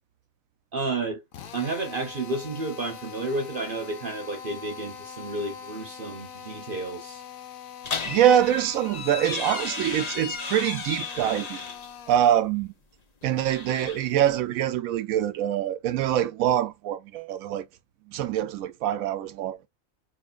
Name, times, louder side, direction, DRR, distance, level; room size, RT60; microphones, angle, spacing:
voice 1, 0.7-1.2 1.5-7.2, right 2 dB, 45° right, 0.9 m, -31 dB
Drill, 1.3-12.3, left 7 dB, 80° left, 1.1 m, -43 dB
sound 1, 7.8-11.9 13.2-14.4, left 5 dB, 40° left, 0.6 m, -34 dB
voice 2, 8.1-11.6 12.1-12.7 13.2-17.6 18.1-19.7, right 10 dB, 85° right, 1.0 m, -24 dB
4.1 x 3.0 x 2.3 m
omnidirectional pair, 1.4 m